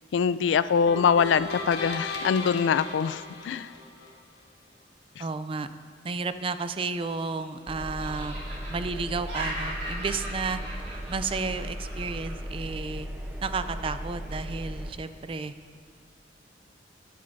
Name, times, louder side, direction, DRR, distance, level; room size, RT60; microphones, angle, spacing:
voice 1, 0.1-3.7 5.2-5.3, left 6 dB, 90° left, 15 dB, 0.3 m, -24 dB
sound 1, 0.9-4.1, left 3 dB, 70° left, 1.5 m, -36 dB
voice 2, 5.2-5.7 6.0-8.4 8.7-10.6 11.1-13.1 13.4-15.5, right 4 dB, 30° right, 11 dB, 0.4 m, -32 dB
Laughter, 6.9-7.6 8.0-12.3, right 1 dB, 65° right, 2.8 m, -38 dB
Engine, 7.7-14.9, equal, 10° right, 0.7 m, -37 dB
13.5 x 10.5 x 2.6 m, 2.3 s
head